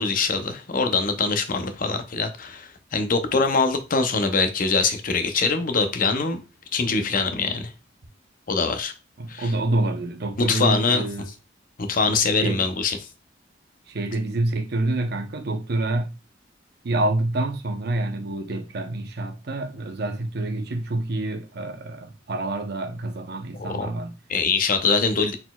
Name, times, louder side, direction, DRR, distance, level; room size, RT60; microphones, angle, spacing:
voice 1, 0.0-6.4 6.7-7.7 8.5-8.9 9.3-9.5 10.4-11.1 11.8-13.0 23.6-23.9 24.3-25.4, left 4 dB, 45° left, 0.6 m, -23 dB
voice 2, 9.2-11.3 12.4-12.6 13.9-16.1 16.8-24.2, right 2 dB, 55° right, 0.7 m, -27 dB
4.3 x 3.9 x 2.2 m
head